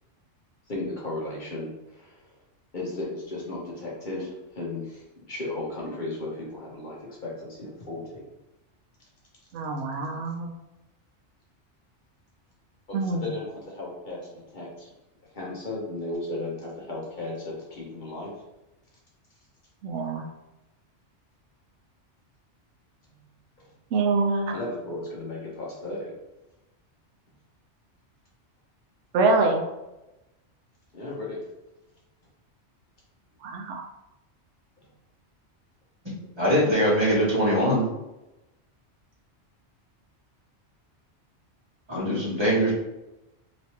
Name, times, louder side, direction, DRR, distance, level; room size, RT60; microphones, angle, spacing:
voice 1, 0.7-2.2 2.7-8.2 12.9-14.9 15.3-18.3 23.6-23.7 24.5-26.1 30.9-31.4, left 2 dB, 45° left, -4 dB, 0.9 m, -35 dB
voice 2, 9.5-10.5 12.9-13.2 19.8-20.2 23.9-24.5 29.1-29.6 33.4-33.8, right 3 dB, 80° right, 2 dB, 0.9 m, -25 dB
voice 3, 36.3-37.8 41.9-42.7, equal, 25° right, -6 dB, 1.2 m, -22 dB
3.3 x 3.0 x 2.8 m, 0.97 s
omnidirectional pair, 1.2 m